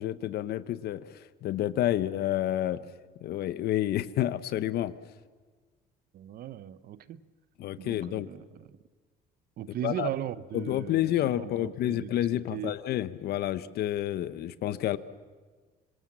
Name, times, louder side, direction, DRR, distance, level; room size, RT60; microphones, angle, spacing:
voice 1, 0.0-2.8 3.2-4.9 7.6-8.3 9.8-10.1 10.5-15.0, left 13 dB, 70° left, 0.9 m, -29 dB
voice 2, 6.1-7.2 7.8-8.8 9.6-12.8, right 12 dB, 60° right, 0.8 m, -38 dB
25.5 x 21.0 x 7.4 m
cardioid pair, 110°, 17 cm